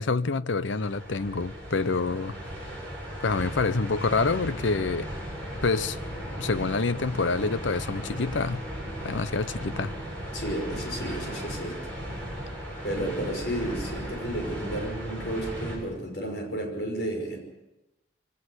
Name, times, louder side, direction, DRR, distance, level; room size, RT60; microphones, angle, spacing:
voice 1, 0.0-2.4 3.2-5.1 5.6-6.0 6.4-8.6 9.0-9.9, left 4 dB, 75° left, 0.7 m, -27 dB
sound 1, 0.7-15.8, equal, 5° left, 7.4 m, -36 dB
voice 2, 10.3-11.8 12.8-17.4, right 1 dB, 55° left, 5.8 m, -32 dB
23.0 x 18.0 x 8.0 m
head